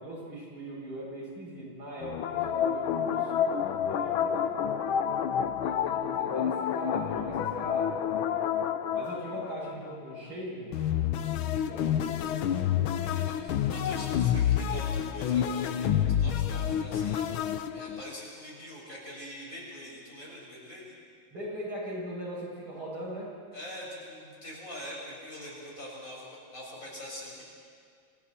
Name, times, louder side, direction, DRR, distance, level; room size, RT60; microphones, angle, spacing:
voice 1, 0.0-3.4 3.8-4.6 5.6-8.0 8.9-10.8 11.7-12.7 13.0-13.4 21.3-23.3, right 1 dB, 85° right, -5 dB, 8.1 m, -40 dB
sound 1, 2.0-10.2 10.7-18.1, left 9 dB, 85° left, 1.7 m, -29 dB
voice 2, 13.0-20.9 23.5-27.4, equal, 40° left, -3 dB, 6.1 m, -44 dB
28.0 x 25.5 x 4.4 m, 2.2 s
omnidirectional pair, 2.2 m